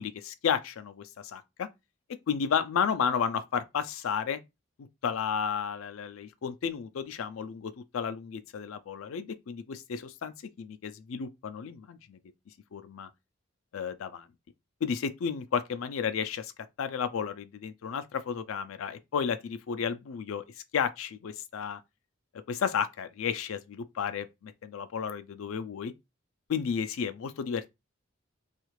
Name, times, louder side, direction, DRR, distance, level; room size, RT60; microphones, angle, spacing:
voice 1, 0.0-1.7 2.3-4.4 5.0-12.2 12.7-13.1 13.7-14.3 14.8-16.5 16.8-20.4 20.7-21.8 22.5-25.9 26.5-27.7, left 7 dB, 85° left, 0.4 m, -32 dB
3.2 x 2.4 x 3.1 m
head